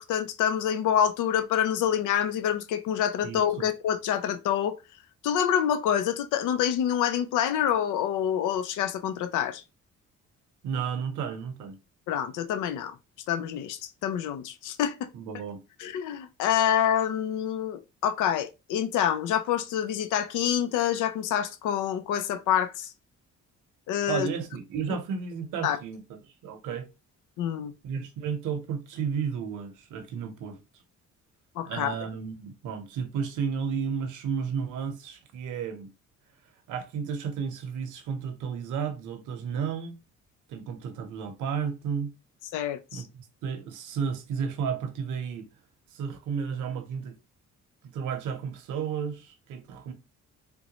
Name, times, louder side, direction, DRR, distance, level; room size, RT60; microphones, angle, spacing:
voice 1, 0.0-4.8 5.2-9.6 12.1-13.0 13.3-15.1 15.8-22.9 23.9-24.3 25.6-25.8 27.4-27.7 31.6-31.9 42.5-43.0, left 9 dB, 85° left, 0.5 m, -27 dB
voice 2, 3.2-3.7 10.6-11.8 15.1-15.6 24.1-26.9 27.8-30.6 31.6-35.9 36.7-40.0 40.5-42.1 42.9-45.5 45.9-47.2 47.9-49.9, right 6 dB, 90° right, 0.8 m, -33 dB
3.7 x 2.2 x 2.9 m
cardioid pair, 90°, 30 cm